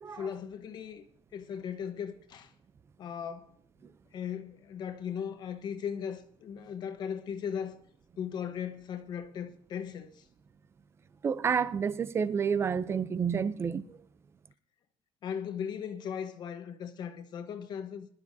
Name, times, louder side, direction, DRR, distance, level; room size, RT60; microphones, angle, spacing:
voice 1, 0.1-2.5 3.0-3.5 4.1-7.8 8.2-10.3 15.2-18.1, left 8 dB, 40° left, 1.1 m, -38 dB
voice 2, 11.2-14.0, right 6 dB, 25° right, 0.5 m, -29 dB
21.0 x 12.5 x 2.7 m
cardioid pair, 160°, 11 cm